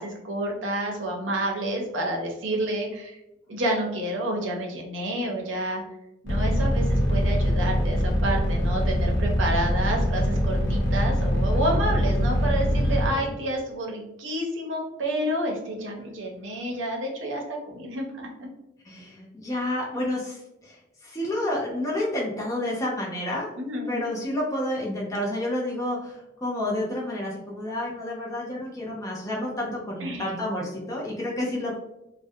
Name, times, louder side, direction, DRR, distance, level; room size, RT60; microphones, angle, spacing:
voice 1, 0.0-3.2 3.5-5.8 6.2-18.3 23.6-24.0 30.0-30.3, right 1 dB, 80° right, 0 dB, 0.6 m, -29 dB
sound 1, 6.3-13.1, equal, 70° left, 0.9 m, -23 dB
voice 2, 18.8-23.5 23.9-31.8, left 1 dB, 20° left, -4 dB, 0.5 m, -30 dB
2.4 x 2.1 x 2.6 m, 0.90 s
head